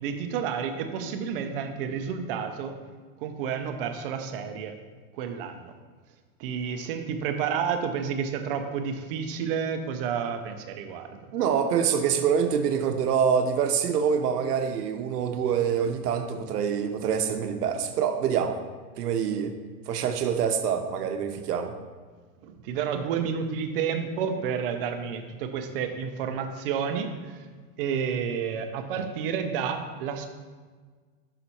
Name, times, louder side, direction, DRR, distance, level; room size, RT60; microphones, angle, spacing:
voice 1, 0.0-2.8 3.2-4.7 5.2-5.7 6.4-11.2 22.4-27.4 27.8-30.3, right 7 dB, 40° right, 7 dB, 0.5 m, -30 dB
voice 2, 11.3-18.6 19.0-19.5 19.9-21.7, right 7 dB, 85° right, 7 dB, 0.8 m, -25 dB
5.8 x 4.1 x 4.3 m, 1.5 s
supercardioid pair, 145°, 46 cm